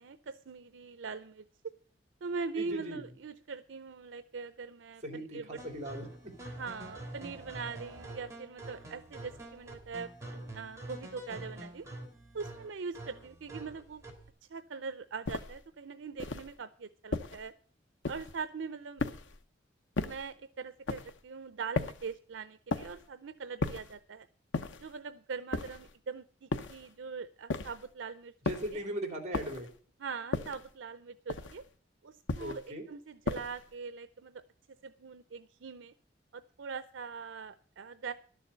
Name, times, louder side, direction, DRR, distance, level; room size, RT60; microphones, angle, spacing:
voice 1, 0.0-1.5 2.2-5.6 6.5-11.9 12.3-14.0 14.5-17.6 18.1-19.0 20.0-24.3 24.8-28.3 28.7-28.8 30.0-31.6 32.0-34.4 34.8-35.9 36.3-38.1, right 5 dB, 80° right, 12 dB, 0.6 m, -42 dB
voice 2, 2.6-3.0 5.0-6.3 28.4-29.7 32.4-32.8, right 1 dB, 40° right, 4 dB, 3.0 m, -39 dB
sound 1, 5.6-14.3, right 1 dB, 15° right, 3.2 m, -46 dB
sound 2, 15.3-15.7 16.2-16.6 17.1-17.5 18.0-18.4 19.0-19.4 20.0-20.3 20.9-21.2 21.8-22.1 22.7-23.1 23.6-24.0 24.5-24.9 25.5-25.9 26.5-26.9 27.5-27.9 28.5-28.8 29.3-29.7 30.3-30.7 31.3-31.7 32.3-32.7 33.3-33.7, left 3 dB, 90° left, 0.9 m, -36 dB
12.5 x 7.1 x 8.0 m, 0.44 s
head